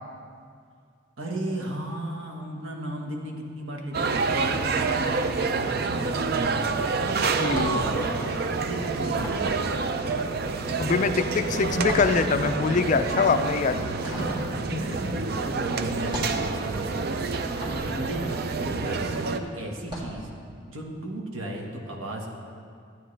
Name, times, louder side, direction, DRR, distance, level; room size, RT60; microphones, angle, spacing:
voice 1, 1.2-6.9 7.2-9.8 14.0-14.4 14.7-17.7 17.9-20.3 20.7-22.3, right 1 dB, 80° right, 1 dB, 1.4 m, -35 dB
sound 1, 3.9-19.4, right 4 dB, 50° right, 0.4 m, -28 dB
sound 2, 4.5-5.7 6.0-19.2 19.7-20.2, left 1 dB, 25° right, 1.7 m, -40 dB
voice 2, 7.4-8.1 10.8-13.9 14.7-15.1 17.7-18.0, left 4 dB, 35° left, 9 dB, 0.3 m, -25 dB
12.5 x 9.0 x 3.3 m, 2.2 s
head